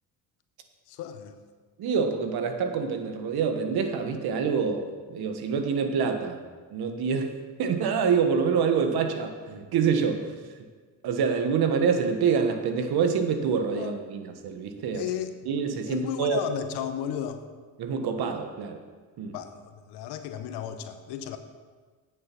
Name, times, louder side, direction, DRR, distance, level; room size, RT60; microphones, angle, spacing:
voice 1, 0.9-1.4 13.7-14.0 14.9-15.3 15.9-17.4 19.3-21.4, left 9 dB, 80° left, 9 dB, 0.9 m, -34 dB
voice 2, 1.8-6.4 6.7-7.3 7.6-10.3 11.0-15.0 15.4-16.4 17.8-18.8 19.2-19.3, right 6 dB, 70° right, 6 dB, 1.3 m, -26 dB
8.8 x 7.5 x 6.0 m, 1.5 s
supercardioid pair, 75°, 39 cm